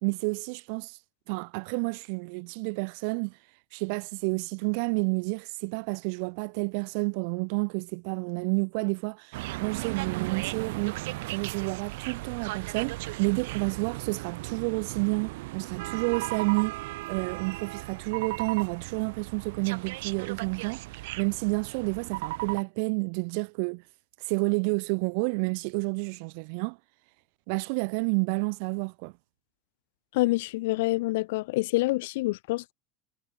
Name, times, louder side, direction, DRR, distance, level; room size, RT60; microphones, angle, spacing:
voice 1, 0.0-1.0 1.3-3.3 3.7-11.0 11.3-16.8 17.1-23.8 24.2-26.8 27.5-29.1, right 36 dB, 65° right, 2.9 m, -30 dB
sound 1, 9.3-22.6, right 21 dB, 90° right, 0.9 m, -36 dB
voice 2, 30.1-32.7, left 20 dB, 85° left, 1.6 m, -27 dB
cardioid pair, 170°, 0 cm